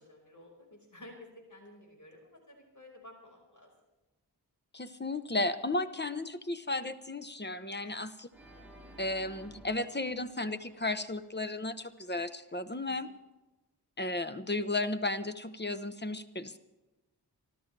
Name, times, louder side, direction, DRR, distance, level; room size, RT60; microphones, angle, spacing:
voice 1, 0.0-3.7 7.8-8.0 12.9-13.0, left 1 dB, 50° left, 2 dB, 5.1 m, -53 dB
voice 2, 4.7-8.3 9.0-13.1 14.0-16.6, left 2 dB, 25° left, 11 dB, 1.1 m, -34 dB
Organ, 8.3-11.4, right 1 dB, 5° right, 5.3 m, -54 dB
25.0 x 13.0 x 3.4 m, 1.1 s
wide cardioid pair, 50°, 40 cm